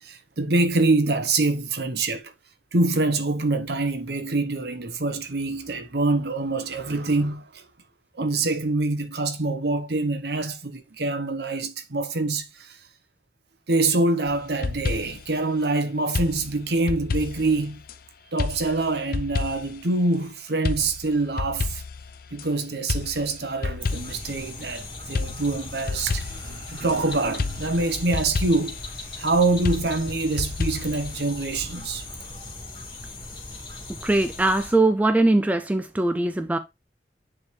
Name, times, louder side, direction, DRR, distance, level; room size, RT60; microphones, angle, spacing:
voice 1, 0.0-2.3 2.7-7.7 8.1-12.8 13.7-17.8 18.3-21.8 22.3-28.7 29.2-32.1, right 2 dB, 65° right, 0.9 m, -25 dB
sound 1, 14.3-15.3 16.2-18.0 18.4-19.8 20.7-22.5 22.9-24.3 25.2-27.0 27.4-28.8 29.7-31.2, left 3 dB, 55° left, 0.5 m, -30 dB
sound 2, 23.8-34.7, left 2 dB, 30° left, 2.5 m, -38 dB
voice 2, 34.0-36.6, right 2 dB, 10° right, 0.3 m, -21 dB
9.7 x 3.6 x 3.2 m
head